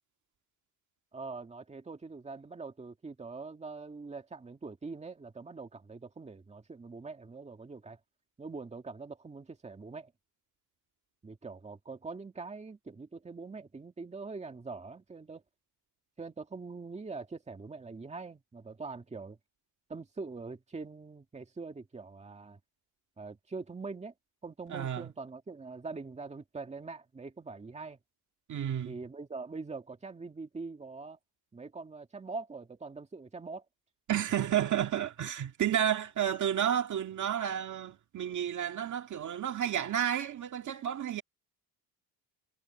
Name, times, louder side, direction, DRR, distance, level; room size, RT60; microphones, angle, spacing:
voice 1, 1.1-8.0 8.4-10.1 11.2-15.4 16.2-19.4 19.9-22.6 23.2-24.1 24.4-28.0 28.8-31.2 31.5-33.7, right 4 dB, 20° right, 2.0 m, -43 dB
voice 2, 24.7-25.1 28.5-29.0 34.1-41.2, right 10 dB, 50° right, 1.9 m, -31 dB
cardioid pair, 145°, 37 cm